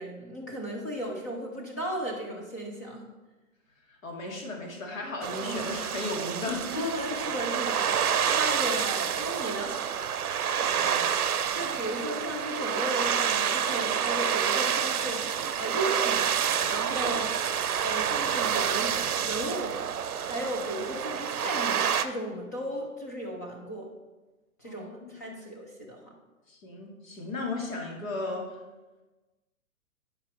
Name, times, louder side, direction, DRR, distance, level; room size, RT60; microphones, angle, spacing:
voice 1, 0.0-3.1 5.4-5.6 6.7-9.8 11.5-15.2 15.6-17.3 17.8-19.0 19.2-19.8 20.2-23.9 24.6-26.0, right 1 dB, 15° left, 0 dB, 0.3 m, -35 dB
voice 2, 3.9-6.9 10.7-11.1 11.5-11.7 24.6-25.5 26.5-28.5, left 2 dB, 65° left, 0 dB, 2.2 m, -36 dB
sound 1, 5.2-22.0, right 8 dB, 90° right, 0.6 m, -28 dB
10.5 x 4.9 x 3.2 m, 1.2 s
hypercardioid pair, 130°, 43 cm